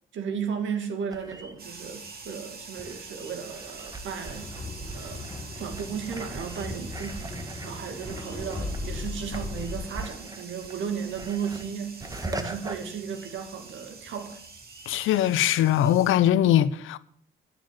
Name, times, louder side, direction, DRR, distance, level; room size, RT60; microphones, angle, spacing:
voice 1, 0.1-4.5 4.9-5.3 5.6-7.2 7.6-14.4, right 7 dB, 75° right, 2.4 m, -35 dB
sound 1, 1.1-13.9 14.1-16.0, right 2 dB, 20° right, 1.6 m, -42 dB
sound 2, 1.6-16.2, right 4 dB, 50° right, 2.9 m, -45 dB
sound 3, 4.2-9.9, left 2 dB, 20° left, 3.3 m, -37 dB
voice 2, 14.9-17.0, left 11 dB, 85° left, 0.7 m, -21 dB
12.5 x 6.8 x 7.5 m
cardioid pair, 90°, 20 cm